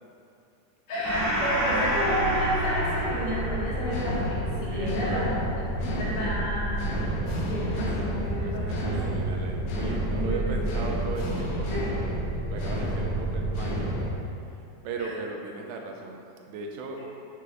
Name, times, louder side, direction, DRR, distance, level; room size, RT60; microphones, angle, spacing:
voice 1, 0.9-5.4 5.8-7.0 7.5-8.9 9.7-9.8 10.1-10.7 11.7-11.8 15.0-15.1 17.0-17.1, equal, 40° left, -9 dB, 1.2 m, -31 dB
Gong, 1.0-8.0, right 1 dB, 55° right, 2.1 m, -31 dB
sound 1, 1.6-14.1, right 1 dB, 80° left, 1.3 m, -30 dB
voice 2, 4.7-5.4 5.7-6.3 8.3-12.2 12.5-14.1 14.5-17.0, right 4 dB, 80° right, 2 dB, 2.1 m, -38 dB
6.8 x 3.3 x 4.8 m, 2.7 s
omnidirectional pair, 3.9 m